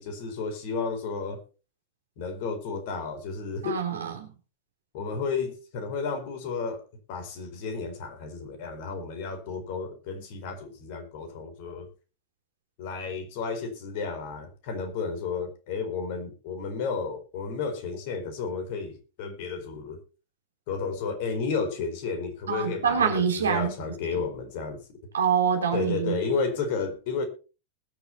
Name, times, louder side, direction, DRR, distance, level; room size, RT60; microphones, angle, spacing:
voice 1, 0.0-1.4 2.2-3.8 4.9-6.8 7.1-11.9 12.8-20.0 20.7-24.8 25.7-27.2, left 5 dB, 50° left, 7 dB, 4.4 m, -32 dB
voice 2, 3.6-4.3 22.5-23.7 24.1-24.2 25.1-26.2, right 7 dB, 70° right, 4 dB, 3.4 m, -25 dB
20.5 x 7.3 x 4.3 m, 0.34 s
figure-of-eight pair, 90°, 0 cm